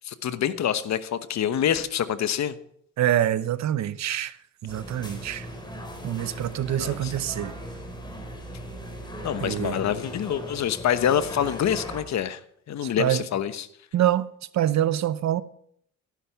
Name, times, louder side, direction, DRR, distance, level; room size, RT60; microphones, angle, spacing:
voice 1, 0.0-2.5 6.3-6.5 6.8-7.1 9.2-12.4 12.7-13.7, left 9 dB, 65° left, 1.1 m, -26 dB
voice 2, 3.0-4.4 4.6-5.5 6.0-7.5 9.4-9.8 12.8-13.2 13.9-14.3 14.5-15.4, right 12 dB, 65° right, 0.8 m, -25 dB
sound 1, 4.7-12.0, equal, 15° left, 4.1 m, -38 dB
15.0 x 11.0 x 5.7 m
cardioid pair, 90°, 30 cm